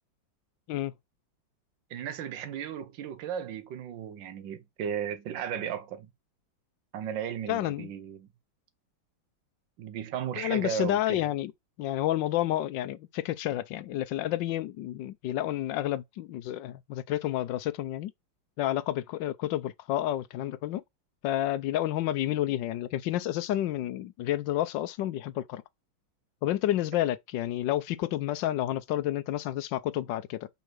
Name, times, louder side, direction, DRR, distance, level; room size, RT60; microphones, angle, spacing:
voice 1, 1.9-6.1 6.9-8.3 9.8-11.3, right 9 dB, 75° right, 1.5 m, -35 dB
voice 2, 7.5-7.9 10.4-11.5 11.8-18.1 18.6-20.8 21.2-25.6 26.4-30.5, left 13 dB, 75° left, 1.3 m, -30 dB
5.4 x 4.2 x 6.0 m
omnidirectional pair, 2.1 m